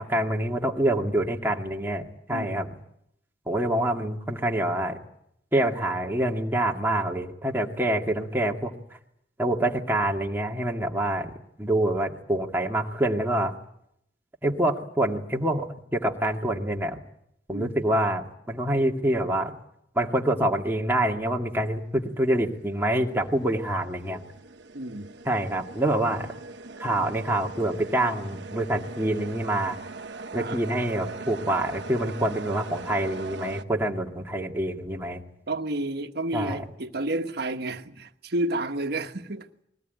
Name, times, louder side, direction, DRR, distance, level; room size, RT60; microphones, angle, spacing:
voice 1, 0.0-2.7 3.5-5.0 5.5-8.7 9.4-11.3 11.6-13.5 14.4-17.0 17.5-19.5 20.0-24.2 25.3-26.3 26.8-29.8 30.3-35.2 36.3-36.6, right 1 dB, 15° right, 2.1 m, -26 dB
voice 2, 2.3-2.7 17.5-17.7 24.7-25.1 30.3-30.6 35.5-39.5, right 2 dB, 65° right, 1.4 m, -31 dB
sound 1, 22.1-33.6, right 3 dB, 80° right, 1.1 m, -41 dB
21.0 x 19.0 x 9.3 m
head